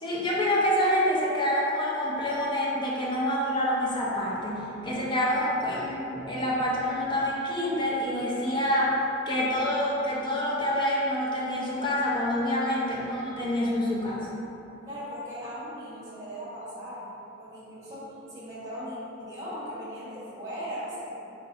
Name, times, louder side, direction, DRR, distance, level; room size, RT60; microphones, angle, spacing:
voice 1, 0.0-9.0 9.3-14.3, left 1 dB, 25° left, -6 dB, 0.7 m, -27 dB
voice 2, 14.8-21.1, equal, 20° right, -11 dB, 1.5 m, -38 dB
4.8 x 3.3 x 2.7 m, 2.9 s
head